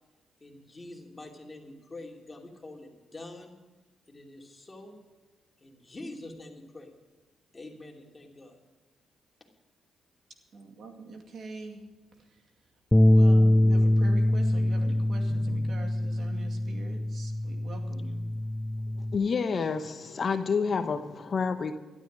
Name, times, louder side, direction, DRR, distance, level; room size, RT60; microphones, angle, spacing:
voice 1, 0.4-3.6 4.1-5.0 5.6-6.9 7.5-8.6, left 2 dB, 25° left, 1 dB, 2.9 m, -45 dB
voice 2, 10.5-11.8 13.0-18.3, right 3 dB, 60° right, 4 dB, 2.3 m, -43 dB
Bass guitar, 12.9-19.2, left 1 dB, 10° left, 0.4 m, -24 dB
voice 3, 19.1-21.7, left 5 dB, 50° left, 9 dB, 0.9 m, -28 dB
12.5 x 12.0 x 6.3 m, 1.2 s
cardioid pair, 70°, 0 cm